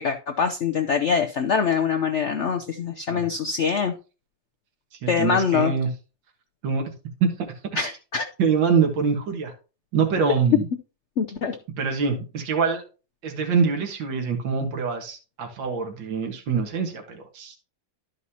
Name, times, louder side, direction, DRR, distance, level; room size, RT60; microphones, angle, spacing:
voice 1, 0.0-3.9 5.1-5.7 7.8-8.3 11.2-11.6, left 6 dB, 85° left, 5 dB, 0.6 m, -24 dB
voice 2, 5.0-5.9 6.6-6.9 7.2-7.3 8.4-9.5 9.9-10.6 11.8-12.8 13.2-17.6, right 5 dB, 70° right, 3 dB, 2.1 m, -24 dB
12.5 x 5.2 x 2.8 m, 0.34 s
omnidirectional pair, 2.1 m